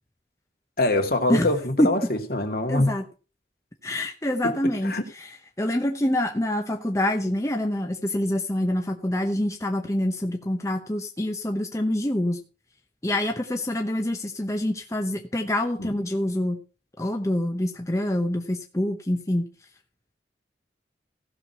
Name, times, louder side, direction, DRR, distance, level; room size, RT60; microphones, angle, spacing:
voice 1, 0.8-2.9 4.8-5.0 15.8-15.9, left 1 dB, 55° left, 4 dB, 2.4 m, -24 dB
voice 2, 2.7-3.1 3.8-5.3 5.6-12.4 13.0-16.6 17.0-19.5, left 1 dB, 15° left, 4 dB, 0.9 m, -26 dB
15.5 x 6.4 x 5.6 m, 0.35 s
head